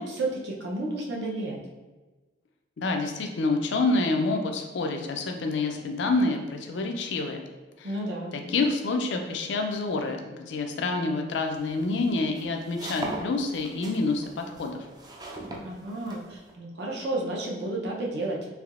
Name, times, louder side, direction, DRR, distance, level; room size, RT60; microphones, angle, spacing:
voice 1, 0.0-1.6 7.8-8.3 15.6-18.4, right 2 dB, 70° right, -2 dB, 0.7 m, -31 dB
voice 2, 2.8-7.4 7.8-7.9 8.3-14.9, left 3 dB, 80° left, 4 dB, 0.4 m, -27 dB
sound 1, 11.4-16.5, right 1 dB, 20° right, 0.3 m, -39 dB
3.4 x 2.7 x 2.4 m, 1.2 s
head